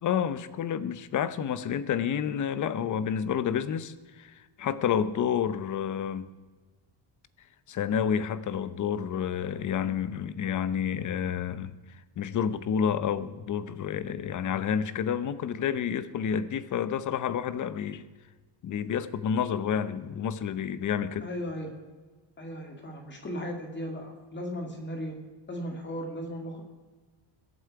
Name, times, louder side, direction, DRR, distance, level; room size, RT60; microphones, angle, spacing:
voice 1, 0.0-6.3 7.7-11.7 12.2-18.0 18.6-21.3, left 8 dB, 40° left, 15 dB, 0.8 m, -29 dB
voice 2, 21.2-21.7 22.4-25.2 25.5-26.6, equal, 25° left, 3 dB, 2.2 m, -36 dB
22.0 x 8.5 x 4.8 m, 1.3 s
cardioid pair, 165°, 46 cm